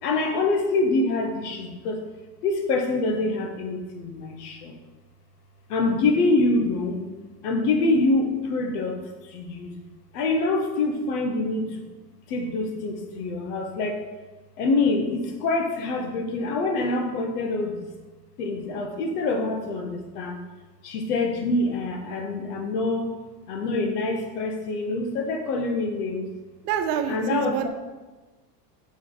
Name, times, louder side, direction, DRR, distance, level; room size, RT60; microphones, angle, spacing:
voice 1, 0.0-2.0 2.4-4.7 5.7-7.1 7.4-9.8 10.1-11.7 12.3-14.0 14.6-17.9 18.4-20.4 20.8-23.1 23.5-26.3 27.1-27.7, left 3 dB, 75° left, 5 dB, 1.2 m, -25 dB
voice 2, 26.6-27.7, right 8 dB, 75° right, 6 dB, 0.9 m, -27 dB
7.1 x 3.5 x 4.1 m, 1.2 s
hypercardioid pair, 90°, 48 cm